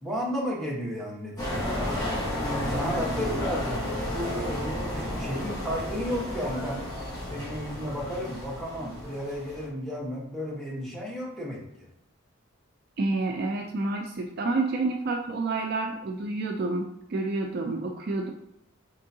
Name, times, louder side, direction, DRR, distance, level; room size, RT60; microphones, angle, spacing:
voice 1, 0.0-2.3 2.7-6.8 7.3-11.9, equal, ahead, -6 dB, 1.1 m, -33 dB
sound 1, 1.4-9.7, left 1 dB, 20° left, 1.3 m, -32 dB
voice 2, 13.0-18.3, right 3 dB, 50° right, 3 dB, 0.4 m, -29 dB
4.4 x 3.6 x 2.7 m, 0.84 s
head